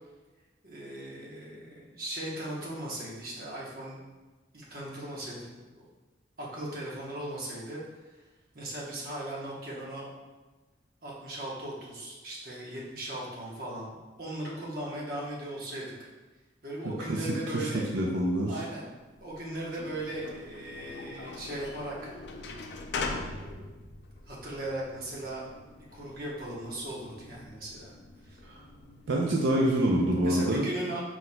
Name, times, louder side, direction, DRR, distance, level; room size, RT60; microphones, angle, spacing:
voice 1, 0.6-4.0 4.5-5.8 6.4-7.8 8.1-8.2 8.5-10.1 11.0-16.1 16.6-17.8 18.5-22.1 24.3-25.5 25.9-27.9 28.2-28.4 30.2-31.0, right 1 dB, 55° right, -4 dB, 1.0 m, -38 dB
voice 2, 16.8-17.3 17.5-17.7 17.9-18.6 28.5-28.6 29.1-30.7, right 1 dB, 90° right, -2 dB, 0.5 m, -26 dB
sound 1, 19.1-29.9, left 3 dB, 65° left, 0.4 m, -42 dB
4.3 x 4.2 x 2.2 m, 1.2 s
head